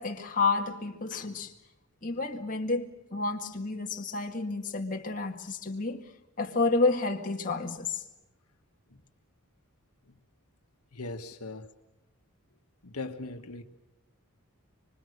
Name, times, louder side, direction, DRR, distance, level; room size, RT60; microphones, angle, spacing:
voice 1, 0.0-1.5 2.0-6.1 6.4-8.0, left 3 dB, 35° left, 2.1 m, -30 dB
voice 2, 10.9-11.7 12.8-13.6, left 3 dB, 80° left, 1.5 m, -40 dB
25.0 x 25.0 x 6.7 m
head